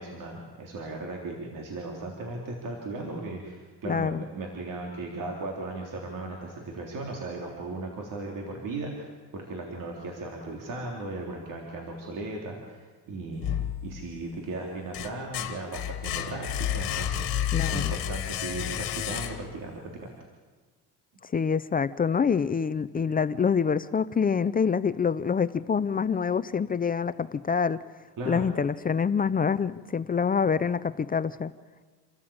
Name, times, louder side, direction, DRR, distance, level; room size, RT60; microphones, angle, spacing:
voice 1, 0.0-20.1 28.2-28.5, right 2 dB, 50° right, 0 dB, 3.5 m, -37 dB
voice 2, 3.9-4.2 17.5-17.9 21.3-27.8 28.3-31.5, left 6 dB, 20° left, 15 dB, 0.5 m, -26 dB
sound 1, 13.4-14.2 14.7-19.7, left 11 dB, 60° left, 2.0 m, -31 dB
27.5 x 14.0 x 8.8 m, 1.4 s
cardioid pair, 120°, 40 cm